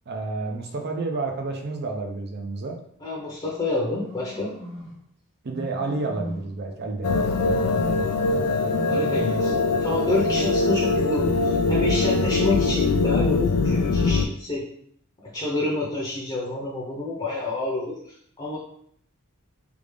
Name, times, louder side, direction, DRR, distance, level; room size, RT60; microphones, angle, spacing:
voice 1, 0.1-2.8 5.4-7.2, right 3 dB, 50° right, 3 dB, 0.5 m, -30 dB
voice 2, 3.0-4.5 8.9-14.6 15.3-18.6, left 2 dB, 25° left, -5 dB, 0.7 m, -28 dB
sound 1, 3.9-5.0 5.5-6.6 7.0-8.2 8.6-9.7 10.1-10.8 11.3-12.1, equal, 30° right, 1.0 m, -37 dB
sound 2, 7.0-14.3, left 3 dB, 80° left, 0.4 m, -22 dB
3.4 x 2.4 x 3.3 m, 0.65 s
head